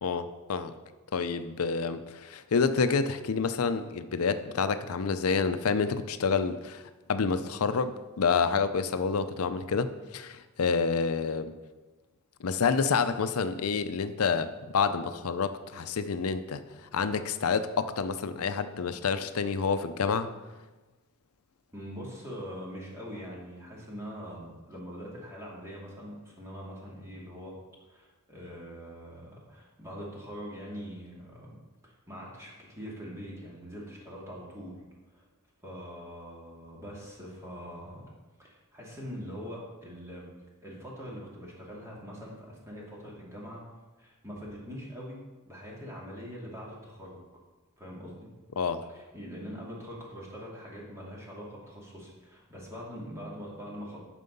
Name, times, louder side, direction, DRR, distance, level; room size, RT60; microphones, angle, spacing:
voice 1, 0.0-0.7 1.1-11.5 12.4-16.6 16.9-20.3 48.6-48.8, left 5 dB, 90° left, 11 dB, 0.6 m, -28 dB
voice 2, 21.7-27.5 27.9-31.6 31.8-34.8 35.1-35.2 35.6-38.1 38.4-40.3 40.6-43.6 44.0-45.2 45.4-47.2 47.8-48.3 48.9-54.0, equal, 15° right, -4 dB, 2.5 m, -43 dB
9.4 x 6.2 x 5.4 m, 1.2 s
head